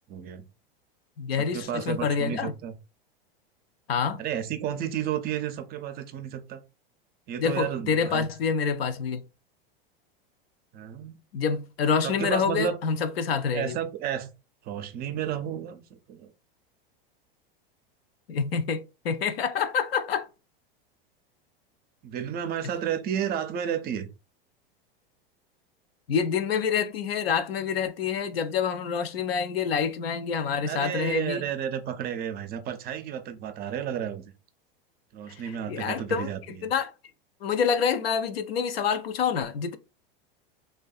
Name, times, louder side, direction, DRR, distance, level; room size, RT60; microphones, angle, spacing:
voice 1, 0.1-0.5 1.4-2.7 4.2-6.6 7.3-8.3 10.7-11.2 12.0-12.8 13.5-14.3 14.6-16.3 22.0-24.1 30.6-34.2 35.1-36.7, right 9 dB, 35° right, 0.4 m, -32 dB
voice 2, 1.2-2.5 3.9-4.2 7.4-9.2 11.3-13.8 18.3-20.3 26.1-31.4 35.3-35.4 35.7-36.9 37.4-39.8, left 6 dB, 90° left, 0.5 m, -27 dB
2.6 x 2.2 x 2.3 m
hypercardioid pair, 100°, 29 cm